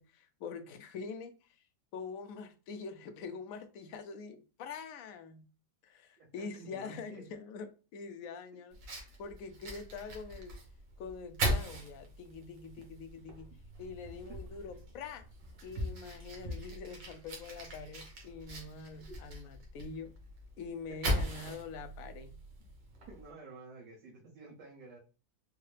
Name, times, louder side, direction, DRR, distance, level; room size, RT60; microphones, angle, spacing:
voice 1, 0.0-1.6 1.9-5.5 5.8-8.8 9.2-10.6 11.0-13.5 13.8-15.2 15.6-20.1 20.6-22.4, left 5 dB, 70° left, 0.9 m, -45 dB
voice 2, 6.2-7.2 19.1-19.2 23.1-25.0, right 3 dB, 65° right, 1.6 m, -51 dB
Fire, 8.7-23.3, equal, 90° right, 1.7 m, -40 dB
4.6 x 2.1 x 3.2 m
omnidirectional pair, 1.8 m